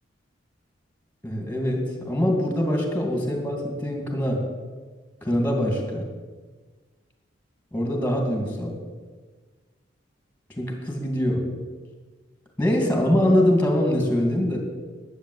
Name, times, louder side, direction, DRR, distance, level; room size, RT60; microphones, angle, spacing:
voice 1, 1.2-4.4 5.2-6.1 7.7-8.7 10.6-11.4 12.6-14.6, left 1 dB, 10° left, 2 dB, 2.5 m, -23 dB
11.5 x 8.4 x 8.0 m, 1.4 s
head